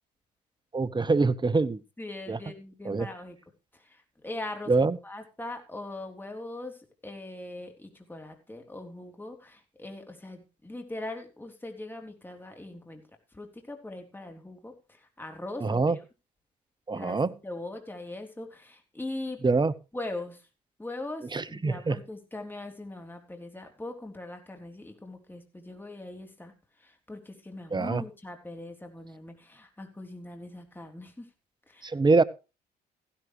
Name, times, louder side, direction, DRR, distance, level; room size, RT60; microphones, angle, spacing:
voice 1, 0.7-1.8 2.3-2.4 2.8-3.1 4.7-5.0 15.6-16.0 16.9-17.3 19.4-19.7 21.3-22.0 27.7-28.0 31.8-32.2, right 3 dB, 25° right, 16 dB, 1.1 m, -24 dB
voice 2, 1.7-3.4 3.7-4.7 5.0-13.0 13.3-16.0 16.9-19.4 19.9-20.5 20.8-26.5 26.8-31.3 31.7-31.9, left 2 dB, 10° left, 4 dB, 3.5 m, -41 dB
15.5 x 11.5 x 3.2 m, 0.30 s
hypercardioid pair, 55°, 20 cm